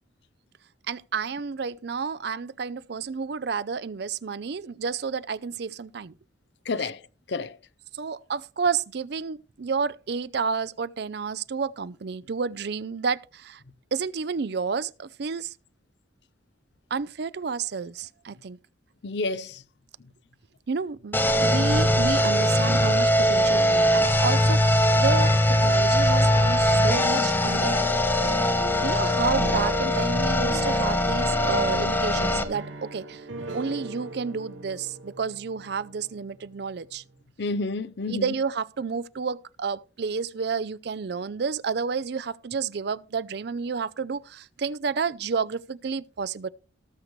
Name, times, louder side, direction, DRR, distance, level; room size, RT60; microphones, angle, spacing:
voice 1, 0.9-6.1 6.8-6.9 7.9-13.6 13.9-15.5 16.9-18.6 20.7-25.3 25.6-27.7 28.8-33.2 33.5-37.0 38.1-46.5, right 5 dB, 55° right, 0.5 m, -30 dB
voice 2, 6.7-7.0 7.3-7.6 19.0-19.6 37.4-38.3, left 3 dB, 60° left, 0.6 m, -29 dB
sound 1, 21.1-32.4, left 1 dB, 10° left, 0.9 m, -21 dB
sound 2, 26.7-36.7, right 2 dB, 80° right, 1.2 m, -38 dB
19.0 x 6.6 x 3.1 m
head